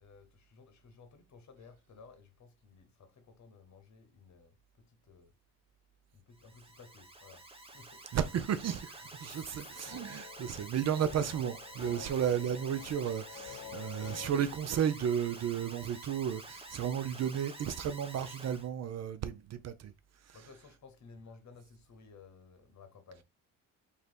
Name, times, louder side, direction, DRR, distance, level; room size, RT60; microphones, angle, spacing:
voice 1, 0.0-5.3 6.1-7.4 7.7-8.0 11.9-12.3 20.3-23.2, left 4 dB, 45° left, 1.1 m, -56 dB
Alarm, 6.3-18.7, right 2 dB, 15° right, 1.1 m, -49 dB
voice 2, 8.1-8.9 9.2-19.9, right 9 dB, 45° right, 0.5 m, -33 dB
sound 1, 9.2-14.3, left 8 dB, 85° left, 0.8 m, -50 dB
3.1 x 2.8 x 4.3 m
supercardioid pair, 65°, 38 cm